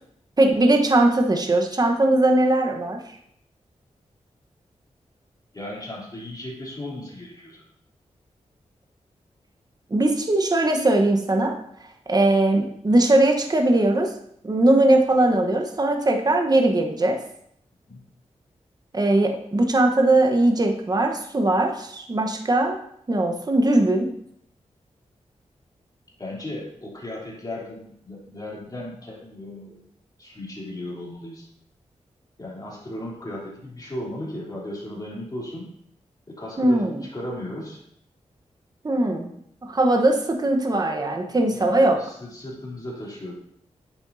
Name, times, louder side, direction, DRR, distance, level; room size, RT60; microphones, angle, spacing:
voice 1, 0.4-3.0 9.9-11.6 12.1-14.1 14.4-17.2 18.9-22.8 23.1-24.1 36.6-37.0 38.8-39.3 39.6-42.0, right 2 dB, 30° right, 3 dB, 1.1 m, -20 dB
voice 2, 5.5-7.6 17.9-18.0 26.2-29.8 30.2-31.5 32.4-35.7 36.3-37.8 41.3-43.3, left 1 dB, 30° left, -5 dB, 3.2 m, -36 dB
8.5 x 7.1 x 2.7 m, 0.69 s
cardioid pair, 75°, 12 cm